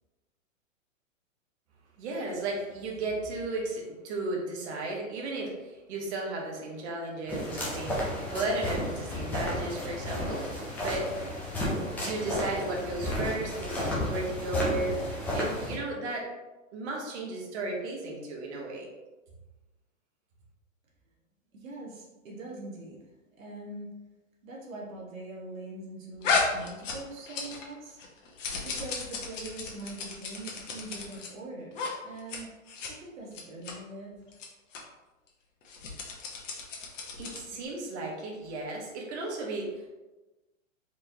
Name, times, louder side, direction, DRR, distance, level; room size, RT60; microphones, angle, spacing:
voice 1, 2.0-8.0 8.3-11.1 11.9-15.0 15.3-16.3 16.7-18.9 37.2-39.9, right 2 dB, 55° right, -1 dB, 1.3 m, -34 dB
sound 1, 7.3-15.8, left 1 dB, 5° left, 0.4 m, -32 dB
voice 2, 21.5-23.0 23.4-23.9 24.4-28.0 28.6-32.5 32.9-34.1, right 2 dB, 80° right, -4 dB, 1.4 m, -42 dB
sound 2, 26.2-27.7 28.0-31.3 31.7-31.9 32.2-32.4 32.7-32.9 33.3-33.7 34.3-34.5 34.7-34.8 35.6-37.5, left 4 dB, 65° left, 1.1 m, -33 dB
4.5 x 3.2 x 2.7 m, 1.1 s
hypercardioid pair, 130°, 40 cm